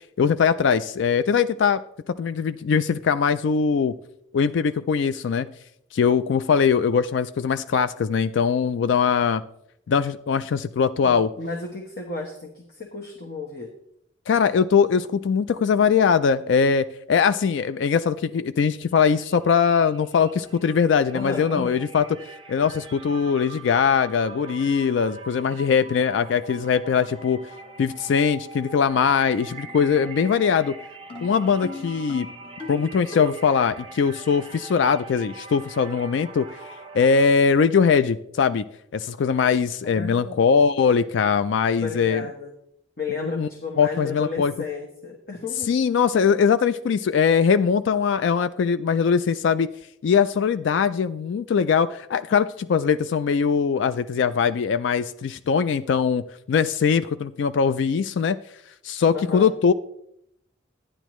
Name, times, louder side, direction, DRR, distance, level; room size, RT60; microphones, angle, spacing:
voice 1, 0.2-1.8 2.1-3.9 4.3-5.5 5.9-9.4 9.9-11.3 14.3-22.0 22.5-27.4 27.8-30.8 31.2-32.3 32.7-36.5 36.9-38.6 38.9-42.2 43.2-43.5 43.8-44.5 45.7-49.7 50.0-58.4 58.8-59.7, left 6 dB, 70° left, 0.3 m, -21 dB
voice 2, 11.0-13.7 21.1-21.8 39.9-40.4 41.8-42.5 43.0-45.7 59.1-59.5, left 3 dB, 50° left, 1.1 m, -33 dB
sound 1, 18.8-18.9 19.2-37.3, right 4 dB, 30° right, 0.6 m, -43 dB
sound 2, 28.6-28.9 29.3-30.4 31.1-33.6 34.5-35.2, left 2 dB, 30° left, 1.2 m, -40 dB
12.0 x 10.0 x 3.1 m
head